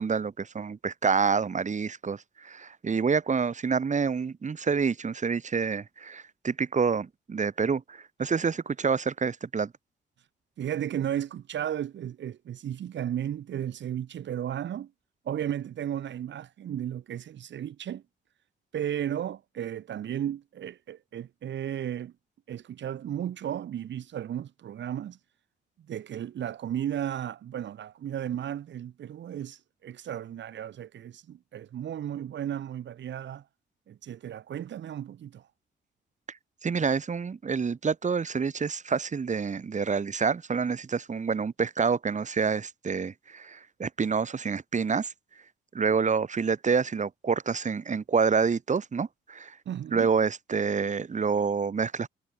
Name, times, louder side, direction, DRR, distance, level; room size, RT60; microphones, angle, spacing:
voice 1, 0.0-9.7 36.6-45.1 45.7-49.6 49.9-52.1, right 5 dB, 35° right, 4.4 m, -27 dB
voice 2, 10.6-14.9 15.2-18.0 18.7-22.1 22.5-25.2 25.9-33.5 33.9-35.5 49.7-50.1, right 10 dB, 65° right, 4.2 m, -34 dB
cardioid pair, 90°, 20 cm